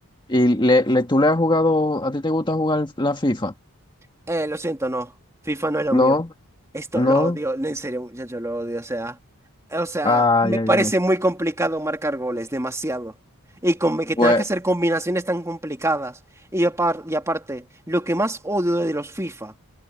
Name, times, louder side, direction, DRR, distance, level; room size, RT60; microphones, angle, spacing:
voice 1, 0.3-3.5 5.9-6.3 6.9-7.4 10.0-10.9 14.2-14.4, left 2 dB, 20° left, 1.7 m, -19 dB
voice 2, 4.3-5.1 5.5-6.2 6.7-9.2 9.7-13.1 13.6-16.1 16.5-19.5, right 1 dB, 15° right, 2.5 m, -24 dB
head